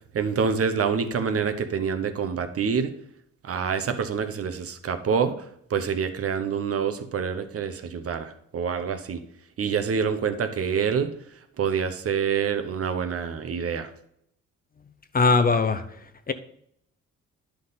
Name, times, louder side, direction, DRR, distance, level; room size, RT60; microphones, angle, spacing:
voice 1, 0.1-2.9 3.4-5.3 5.7-9.2 9.6-11.1 11.6-13.9, right 6 dB, 50° right, 9 dB, 0.9 m, -26 dB
voice 2, 15.1-15.8 16.3-16.4, left 4 dB, 30° left, 10 dB, 0.7 m, -20 dB
10.0 x 5.6 x 4.0 m, 0.72 s
cardioid pair, 90°, 30 cm